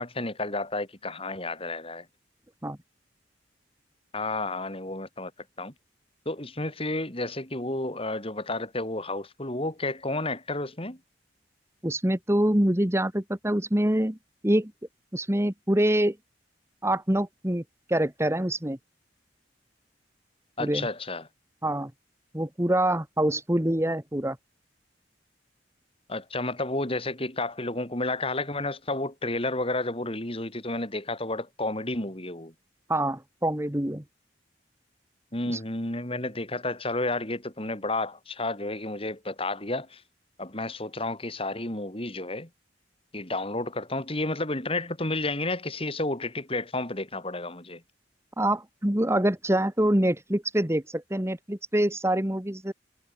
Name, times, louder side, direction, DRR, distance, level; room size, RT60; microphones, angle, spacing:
voice 1, 0.0-2.0 4.1-5.3 5.6-5.7 6.2-11.0 20.6-21.3 26.1-32.5 35.3-40.0 40.4-42.5 43.1-47.8, left 2 dB, 30° left, 4.9 m, -31 dB
voice 2, 11.8-14.2 14.4-14.7 15.1-16.2 16.8-17.6 17.9-18.8 20.6-20.9 21.6-21.9 22.3-24.4 32.9-34.0 35.5-35.6 48.4-52.7, right 1 dB, 15° right, 1.7 m, -25 dB
head